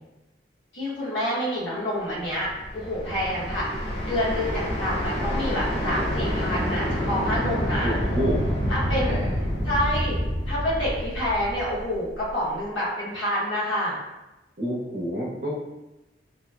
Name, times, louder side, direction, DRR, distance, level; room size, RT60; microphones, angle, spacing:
voice 1, 0.7-3.7 4.0-8.0 8.7-9.2 9.6-10.2 10.5-14.0, equal, 85° left, -7 dB, 1.0 m, -28 dB
sound 1, 2.3-12.3, equal, 30° left, 0.5 m, -28 dB
voice 2, 7.8-8.5 8.9-9.5 14.6-15.5, equal, 65° right, -5 dB, 0.8 m, -29 dB
2.9 x 2.0 x 2.3 m, 1.0 s
head